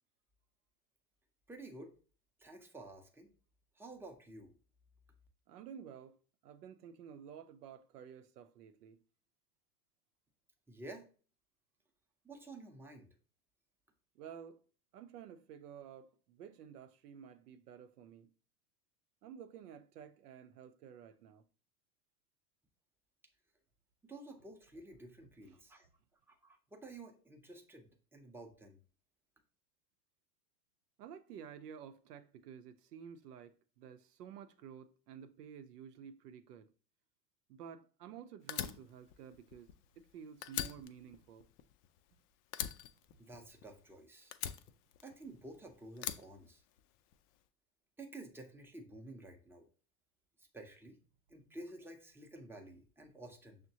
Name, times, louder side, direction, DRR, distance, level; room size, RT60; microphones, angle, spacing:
voice 1, 1.5-1.9 2.4-3.3 3.8-4.5 10.7-11.1 12.2-13.1 24.0-25.9 26.3-28.8 43.2-44.3 45.0-46.6 48.0-49.7 50.5-51.0 51.3-53.6, right 2 dB, 5° right, 0.6 m, -51 dB
voice 2, 5.5-6.2 6.4-9.0 14.1-14.6 14.9-18.3 19.2-21.4 31.0-36.7 37.5-41.5, right 8 dB, 80° right, 0.6 m, -52 dB
Fire, 38.5-40.1 40.4-42.2 42.5-43.9 44.3-45.5 46.0-47.1, left 11 dB, 60° left, 0.5 m, -42 dB
6.2 x 2.1 x 2.7 m
hypercardioid pair, 90°, 47 cm